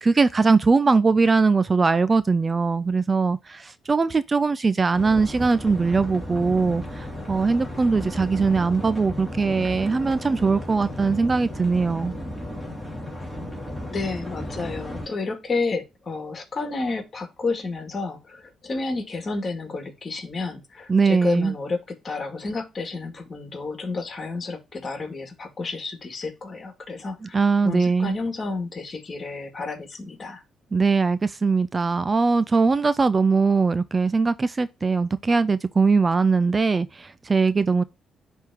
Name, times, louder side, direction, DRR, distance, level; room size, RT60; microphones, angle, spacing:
voice 1, 0.0-12.1 20.9-21.5 27.3-28.1 30.7-37.8, right 4 dB, 30° right, 0.4 m, -21 dB
sound 1, 4.9-15.0, left 1 dB, ahead, 2.9 m, -34 dB
voice 2, 13.9-21.8 22.0-30.4, left 3 dB, 35° left, 2.3 m, -31 dB
10.5 x 3.6 x 2.9 m
cardioid pair, 90°, 0 cm